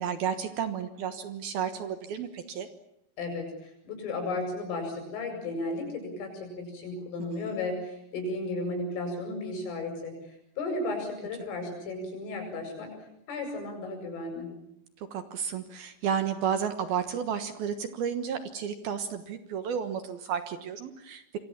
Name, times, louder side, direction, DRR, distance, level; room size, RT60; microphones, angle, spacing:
voice 1, 0.0-2.7 7.3-7.6 15.0-21.4, right 8 dB, 65° right, 9 dB, 2.7 m, -32 dB
voice 2, 3.2-10.1 10.6-12.9 13.3-14.5, left 2 dB, 85° left, 4 dB, 10.5 m, -34 dB
27.5 x 24.0 x 7.4 m, 0.79 s
omnidirectional pair, 5.6 m